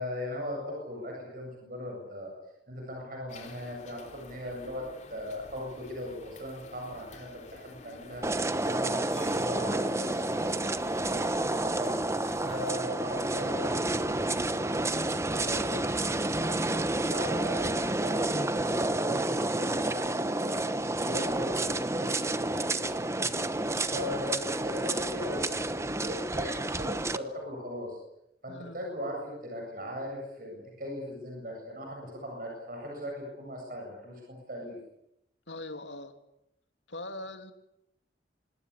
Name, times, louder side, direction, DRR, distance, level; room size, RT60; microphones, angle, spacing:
voice 1, 0.0-2.3 2.7-10.7 11.1-12.0 12.4-14.8 15.3-23.5 23.9-28.0 28.4-34.8, equal, 50° right, 0 dB, 8.0 m, -39 dB
sound 1, 3.3-12.7, left 2 dB, 40° left, 3.3 m, -50 dB
sound 2, 8.2-27.2, right 2 dB, 15° right, 1.0 m, -30 dB
voice 2, 28.5-28.8 35.5-36.1 36.9-37.5, left 2 dB, 90° left, 6 dB, 3.0 m, -41 dB
26.0 x 21.5 x 8.6 m, 0.82 s
head